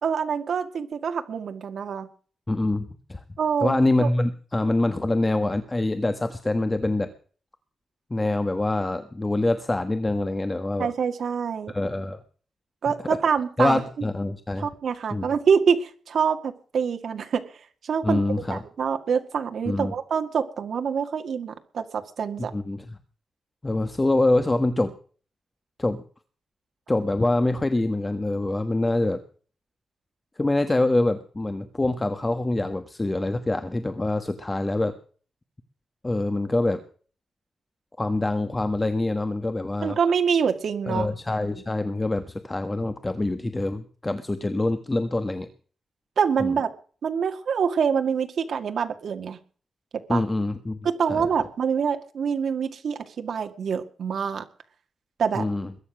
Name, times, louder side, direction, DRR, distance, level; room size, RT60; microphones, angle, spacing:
voice 1, 0.0-2.1 3.4-4.1 10.8-11.7 12.8-13.8 14.6-17.5 17.8-18.2 18.5-22.5 39.8-41.1 46.2-46.7 47.0-49.4 50.1-50.2 50.8-54.4 55.2-55.4, right 6 dB, 65° right, 6 dB, 2.0 m, -25 dB
voice 2, 2.5-3.2 3.6-7.1 8.1-10.9 11.7-12.2 13.6-14.7 15.1-15.3 18.0-18.6 19.6-19.9 22.5-23.0 23.6-24.9 25.8-26.0 26.9-29.2 30.4-34.9 36.0-36.8 38.0-40.0 40.9-45.5 46.4-46.6 50.1-50.8 51.1-51.3 55.3-55.7, left 2 dB, 15° left, 8 dB, 1.2 m, -25 dB
21.5 x 9.7 x 6.2 m, 0.42 s
wide cardioid pair, 150°, 0 cm